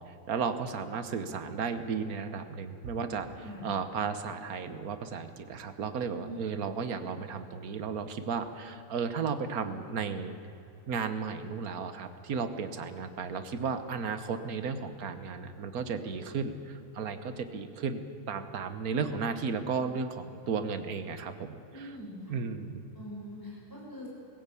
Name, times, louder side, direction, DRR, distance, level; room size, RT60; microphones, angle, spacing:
voice 1, 0.0-3.3 3.6-10.4 10.9-21.9 22.3-22.8, right 5 dB, 55° right, 10 dB, 1.5 m, -34 dB
voice 2, 6.1-6.4 21.7-22.3 22.9-24.1, equal, 10° left, -5 dB, 6.7 m, -43 dB
19.5 x 16.5 x 8.5 m, 2.8 s
omnidirectional pair, 2.0 m